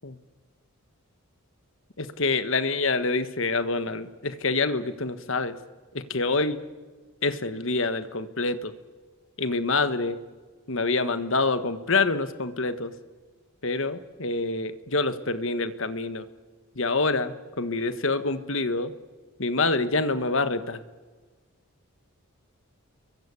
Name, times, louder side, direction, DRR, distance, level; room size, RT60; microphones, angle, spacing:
voice 1, 2.0-5.5 5.9-6.6 7.2-8.7 9.4-10.2 10.7-12.9 13.6-16.3 16.7-18.9 19.4-20.8, left 3 dB, 60° left, 11 dB, 1.4 m, -26 dB
28.5 x 23.0 x 8.4 m, 1.4 s
head